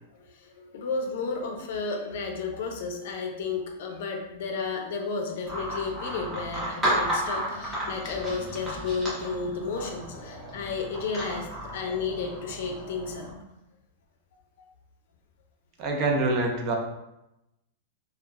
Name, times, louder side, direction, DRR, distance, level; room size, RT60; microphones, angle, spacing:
voice 1, 0.6-13.3, left 4 dB, 65° left, 2 dB, 0.5 m, -32 dB
sound 1, 5.4-13.3, equal, 10° right, 0.8 m, -33 dB
voice 2, 15.8-16.7, right 2 dB, 30° right, 1 dB, 0.4 m, -25 dB
2.3 x 2.2 x 3.2 m, 0.89 s
supercardioid pair, 160°, 0 cm